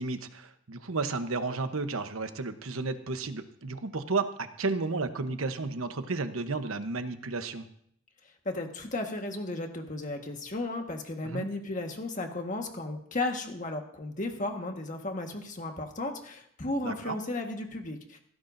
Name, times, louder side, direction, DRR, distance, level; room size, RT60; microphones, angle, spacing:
voice 1, 0.0-4.3 4.6-7.7 11.2-11.5 16.8-17.1, right 3 dB, 90° right, 8 dB, 1.0 m, -32 dB
voice 2, 8.4-18.2, left 2 dB, 40° left, 3 dB, 1.6 m, -34 dB
18.0 x 16.0 x 2.7 m, 0.69 s
head